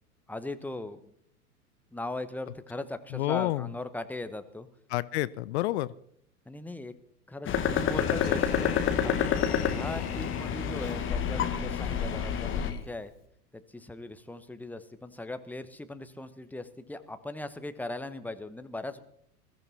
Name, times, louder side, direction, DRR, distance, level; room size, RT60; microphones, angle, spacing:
voice 1, 0.3-1.1 1.9-4.7 6.5-6.9 7.3-13.1 13.5-19.0, left 2 dB, 5° left, 10 dB, 1.0 m, -39 dB
voice 2, 3.1-3.7 4.9-5.9, left 16 dB, 45° left, 18 dB, 0.6 m, -29 dB
sound 1, 7.5-12.7, left 8 dB, 25° left, 1.6 m, -28 dB
sound 2, 8.0-13.2, left 8 dB, 75° left, 2.0 m, -40 dB
21.5 x 13.5 x 4.2 m, 0.66 s
figure-of-eight pair, 90°, 46 cm